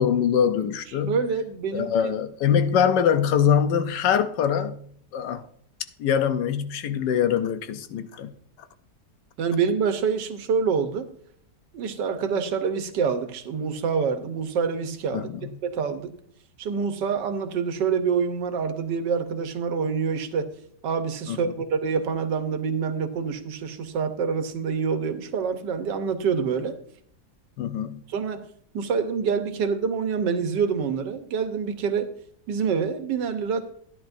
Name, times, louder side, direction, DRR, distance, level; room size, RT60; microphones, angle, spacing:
voice 1, 0.0-1.2 1.7-4.9 5.1-5.4 6.0-8.3 15.1-15.6 21.3-21.4 27.6-28.0, left 8 dB, 85° left, 1.4 m, -23 dB
voice 2, 1.1-2.1 2.5-2.6 9.4-11.1 11.7-16.1 16.6-20.4 20.8-26.7 28.1-28.4 28.7-32.1 32.5-33.6, right 6 dB, 90° right, 1.6 m, -26 dB
14.5 x 10.5 x 2.6 m
omnidirectional pair, 1.8 m